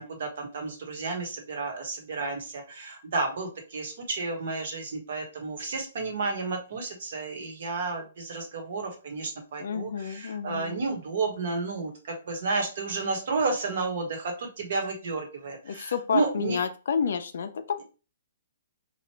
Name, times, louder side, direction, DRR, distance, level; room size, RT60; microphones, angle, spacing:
voice 1, 0.0-16.6, right 3 dB, 50° right, 2 dB, 1.2 m, -32 dB
voice 2, 9.6-10.8 15.6-17.8, left 6 dB, 60° left, 9 dB, 0.5 m, -30 dB
3.1 x 2.4 x 4.3 m, 0.34 s
hypercardioid pair, 175°, 0 cm